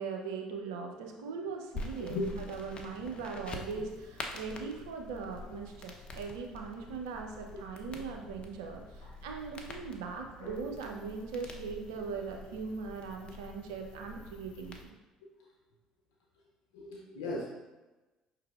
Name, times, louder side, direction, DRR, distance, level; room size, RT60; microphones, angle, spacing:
voice 1, 0.0-14.9, right 5 dB, 80° right, 3 dB, 0.5 m, -40 dB
sound 1, 1.7-14.8, left 2 dB, 40° left, 0.7 m, -46 dB
voice 2, 2.0-2.5 3.7-3.9 7.5-7.6 9.0-9.1 10.4-10.7 16.7-17.4, left 2 dB, 80° left, -3 dB, 0.6 m, -38 dB
5.6 x 3.3 x 2.3 m, 1.1 s
hypercardioid pair, 60°, 3 cm